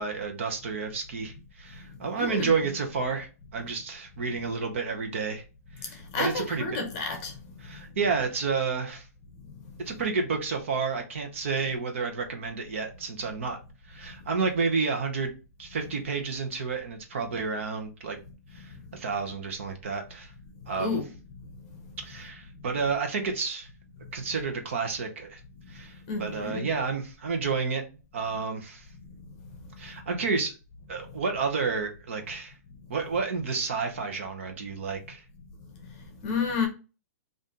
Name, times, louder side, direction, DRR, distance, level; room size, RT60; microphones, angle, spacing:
voice 1, 0.0-5.4 5.8-6.6 7.6-9.1 9.8-13.6 13.9-15.3 15.6-18.2 18.5-20.3 20.7-21.0 22.0-23.7 24.1-25.4 25.7-27.8 28.1-28.9 29.8-30.6 30.9-32.5 32.9-35.2, right 4 dB, 50° right, 0.9 m, -30 dB
voice 2, 2.2-2.5 6.1-7.3 20.8-21.1 26.1-26.7 36.2-36.7, left 4 dB, 25° left, 0.9 m, -30 dB
4.1 x 2.6 x 3.6 m
hypercardioid pair, 175°, 9 cm